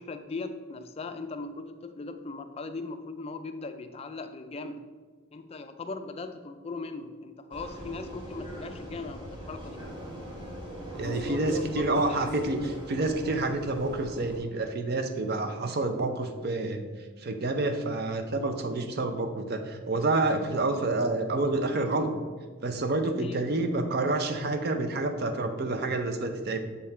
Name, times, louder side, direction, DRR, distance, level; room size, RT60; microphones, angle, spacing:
voice 1, 0.0-4.8 5.3-9.8 11.0-12.3 23.0-23.4, left 3 dB, 30° left, 8 dB, 0.3 m, -39 dB
Vehicle, 7.5-14.4, equal, 25° right, 1.3 m, -41 dB
voice 2, 10.9-16.8 17.2-22.2 22.6-26.6, right 2 dB, 50° right, 7 dB, 0.5 m, -28 dB
6.8 x 3.6 x 4.2 m, 1.5 s
head